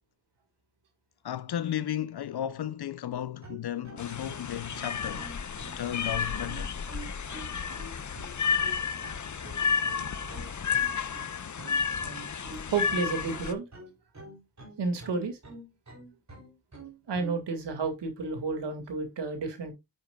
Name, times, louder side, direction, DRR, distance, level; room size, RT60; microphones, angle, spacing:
voice 1, 1.2-5.3 5.8-6.8, left 11 dB, 70° left, 0.6 m, -34 dB
sound 1, 3.1-17.4, right 2 dB, 40° right, 3.8 m, -47 dB
sound 2, 4.0-13.5, left 6 dB, 45° left, 0.8 m, -32 dB
voice 2, 12.6-13.7 14.8-15.4 17.1-19.7, right 4 dB, 85° right, 2.2 m, -31 dB
8.9 x 7.8 x 2.3 m
cardioid pair, 50°, 41 cm